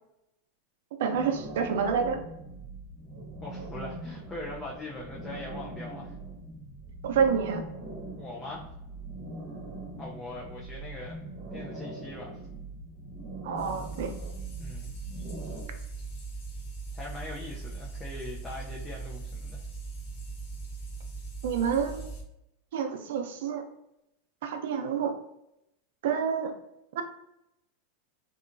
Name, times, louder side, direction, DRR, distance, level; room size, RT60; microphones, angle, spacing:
voice 1, 1.0-2.2 7.0-7.6 13.4-14.1 21.4-22.1 22.7-23.6 24.4-25.1 26.0-26.5 27.0-27.1, right 6 dB, 75° right, 6 dB, 0.4 m, -28 dB
sound 1, 1.1-15.6, right 2 dB, 35° right, 0.9 m, -42 dB
voice 2, 3.4-6.1 8.2-8.7 10.0-11.2 11.5-12.4 14.6-15.0 16.9-19.6, left 2 dB, 15° left, -4 dB, 0.5 m, -41 dB
sound 2, 13.6-22.2, right 4 dB, 55° left, 0.8 m, -40 dB
2.8 x 2.2 x 2.5 m, 0.85 s
supercardioid pair, 130°, 0 cm